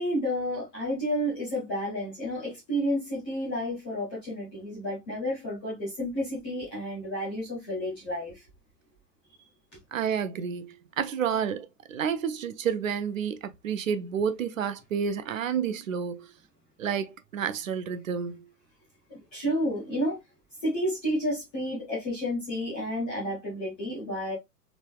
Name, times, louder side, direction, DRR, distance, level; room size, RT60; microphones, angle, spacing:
voice 1, 0.0-8.3 19.3-20.2 20.6-24.3, equal, 5° left, 0.4 m, -31 dB
voice 2, 9.9-16.3 16.8-18.5, right 7 dB, 55° right, 0.6 m, -30 dB
4.0 x 3.4 x 2.2 m
figure-of-eight pair, 120°, 49 cm